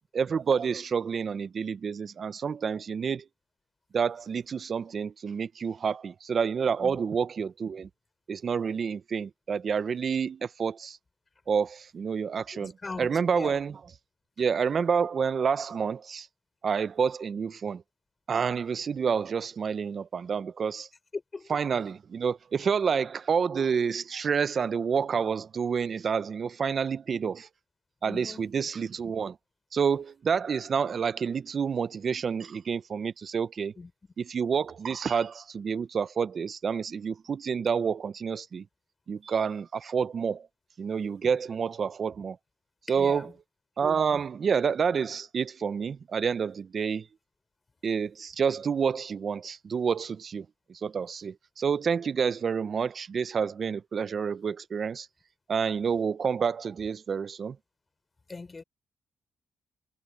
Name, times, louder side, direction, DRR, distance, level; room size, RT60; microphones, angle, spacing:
voice 1, 0.1-3.2 3.9-7.9 8.3-11.0 11.5-12.7 13.0-13.8 14.4-16.3 16.6-17.8 18.3-20.9 21.5-27.5 28.0-29.4 29.7-33.7 34.2-38.6 39.1-40.5 40.8-42.4 42.9-43.3 43.8-47.1 47.8-55.1 55.5-57.6, right 6 dB, 55° right, 0.8 m, -28 dB
voice 2, 12.5-13.6 21.1-21.6 28.0-28.5 33.8-33.9 42.9-43.3 58.3-58.6, left 3 dB, 35° left, 4.2 m, -40 dB
supercardioid pair, 65°, 0 cm